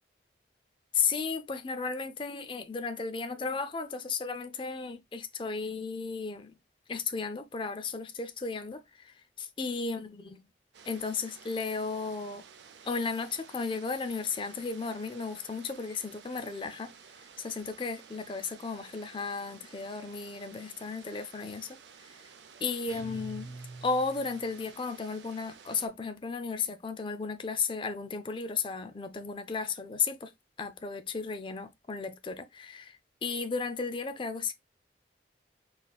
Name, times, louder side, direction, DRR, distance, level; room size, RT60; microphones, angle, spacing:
voice 1, 0.9-6.5 6.9-10.5 10.8-12.4 12.8-16.9 17.4-22.2 22.6-30.3 30.6-34.5, left 4 dB, 30° left, 0.4 m, -34 dB
sound 1, 10.7-25.9, right 6 dB, 75° right, 0.6 m, -53 dB
sound 2, 22.9-24.6, right 3 dB, 20° right, 1.1 m, -45 dB
4.2 x 3.3 x 2.3 m
head